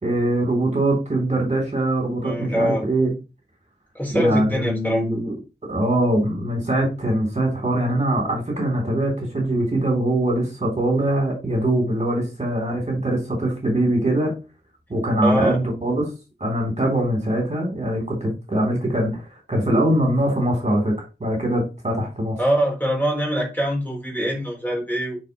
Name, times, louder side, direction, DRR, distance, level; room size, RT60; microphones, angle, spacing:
voice 1, 0.0-3.1 4.1-5.3 5.7-14.4 14.9-16.1 16.4-20.9 21.2-22.4, right 1 dB, 35° right, 0 dB, 3.0 m, -22 dB
voice 2, 2.2-2.8 3.9-5.1 15.2-15.5 22.4-25.2, equal, 10° left, -2 dB, 3.6 m, -23 dB
9.2 x 4.5 x 3.0 m, 0.28 s
wide cardioid pair, 65°, 20 cm